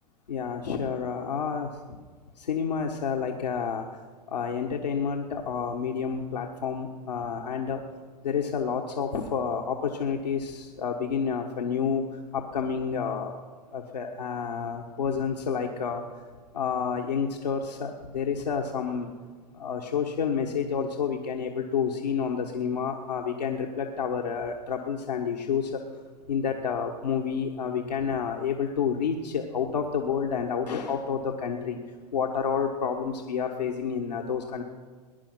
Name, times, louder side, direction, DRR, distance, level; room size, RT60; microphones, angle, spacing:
voice 1, 0.3-1.7 2.5-3.8 4.3-7.8 8.2-12.0 12.3-13.3 13.7-16.0 16.5-19.1 19.6-25.7 26.3-31.8 32.1-34.6, left 6 dB, 85° left, 1 dB, 1.4 m, -29 dB
20.5 x 10.5 x 6.1 m, 1.5 s
hypercardioid pair, 100°, 21 cm